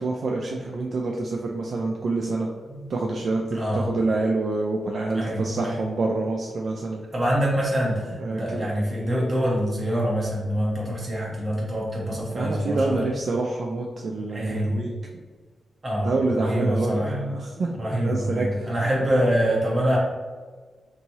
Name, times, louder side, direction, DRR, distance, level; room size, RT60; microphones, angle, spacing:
voice 1, 0.0-2.5 2.9-7.0 8.2-8.7 12.3-14.9 16.0-18.7, right 3 dB, 55° right, 0 dB, 0.3 m, -27 dB
voice 2, 3.5-3.9 5.1-5.8 7.1-13.1 14.3-14.8 15.8-17.4 17.8-20.0, equal, 30° right, -4 dB, 0.8 m, -25 dB
2.9 x 2.7 x 2.7 m, 1.5 s
wide cardioid pair, 135°, 0 cm